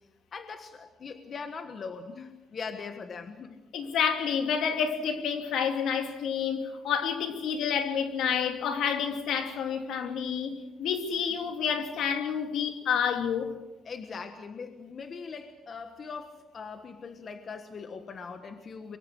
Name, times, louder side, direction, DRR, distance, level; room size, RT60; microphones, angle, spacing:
voice 1, 0.3-3.6 9.9-10.2 13.8-19.0, left 5 dB, 40° left, 1.4 m, -41 dB
voice 2, 3.7-13.5, left 7 dB, 75° left, 2.8 m, -29 dB
24.0 x 23.0 x 6.4 m
cardioid pair, 150°, 0 cm